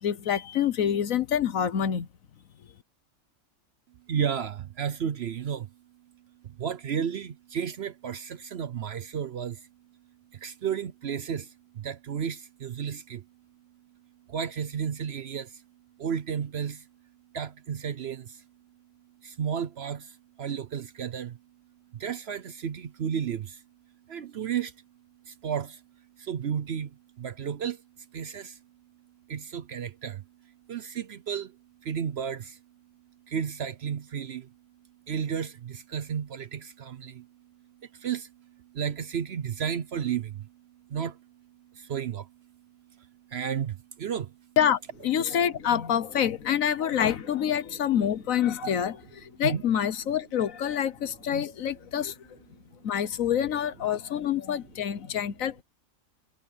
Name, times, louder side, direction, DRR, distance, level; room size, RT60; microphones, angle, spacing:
voice 1, 0.0-2.1 44.6-52.1 52.8-55.6, left 9 dB, 70° left, 1.3 m, -27 dB
voice 2, 4.1-5.7 6.4-9.7 10.3-13.3 14.3-15.6 16.0-16.9 17.3-18.4 19.2-21.4 21.9-23.6 24.1-24.8 25.2-25.8 26.2-28.6 29.3-32.6 33.3-34.5 35.1-44.6 48.6-48.7 49.4-49.6, right 8 dB, 55° right, 0.8 m, -33 dB
omnidirectional pair, 1.5 m